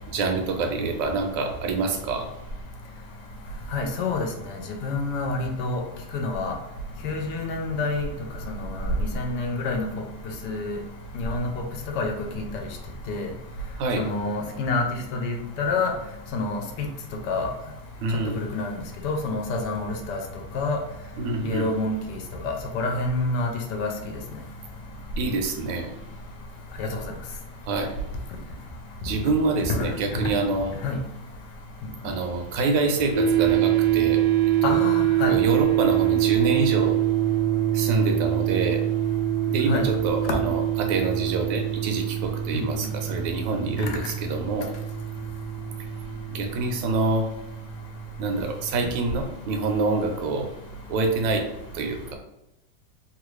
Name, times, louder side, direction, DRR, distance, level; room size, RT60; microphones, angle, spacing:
voice 1, 0.1-2.3 13.8-14.1 18.0-18.4 21.2-21.7 25.2-25.9 27.7-27.9 29.0-30.7 32.0-34.2 34.6-34.8 35.3-37.0 37.7-38.8 39.5-44.7 46.3-47.2 48.2-50.5 50.9-51.4 51.7-52.1, right 3 dB, 90° right, 4 dB, 1.3 m, -26 dB
voice 2, 3.7-4.3 4.8-5.8 6.1-6.6 7.0-8.1 8.5-8.9 9.1-9.9 10.4-10.8 11.1-11.6 12.0-12.4 13.1-13.3 14.0-14.8 15.1-15.9 16.3-16.9 17.3-17.5 18.3-18.7 19.0-20.2 20.5-20.8 21.4-22.0 22.4-23.9 26.8-26.9 29.7-30.2 30.8-31.0 34.6-35.3 39.7-39.8 40.3-40.4 42.5-42.6, left 3 dB, 75° left, 3 dB, 1.1 m, -27 dB
sound 1, 33.1-48.4, right 12 dB, 70° right, 1.0 m, -25 dB
3.2 x 2.4 x 3.0 m, 0.90 s
omnidirectional pair, 2.0 m